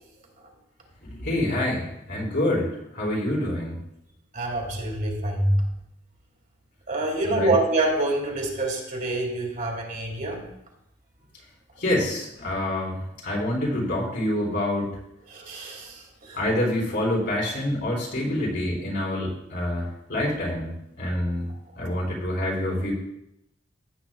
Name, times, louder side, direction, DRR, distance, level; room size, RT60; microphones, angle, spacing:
voice 1, 1.0-3.8 7.2-7.5 11.8-15.0 16.3-21.5 21.7-22.9, left 1 dB, 60° left, -3 dB, 4.1 m, -27 dB
voice 2, 4.3-5.7 6.9-10.4 15.3-16.4, right 2 dB, 45° right, 0 dB, 2.2 m, -26 dB
15.5 x 8.4 x 2.3 m, 0.80 s
head